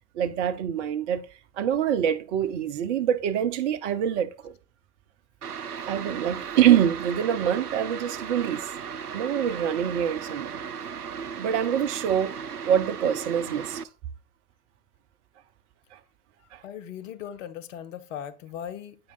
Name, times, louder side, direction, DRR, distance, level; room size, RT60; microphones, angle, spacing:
voice 1, 0.2-1.2 1.6-4.5 5.9-8.6 9.1-10.6 11.4-12.3 12.6-13.8, right 9 dB, 50° right, 0.8 m, -25 dB
sound 1, 5.4-13.8, right 7 dB, 85° right, 0.6 m, -36 dB
voice 2, 16.6-19.0, left 9 dB, 55° left, 0.9 m, -38 dB
8.4 x 4.7 x 3.9 m
figure-of-eight pair, 85°, 45 cm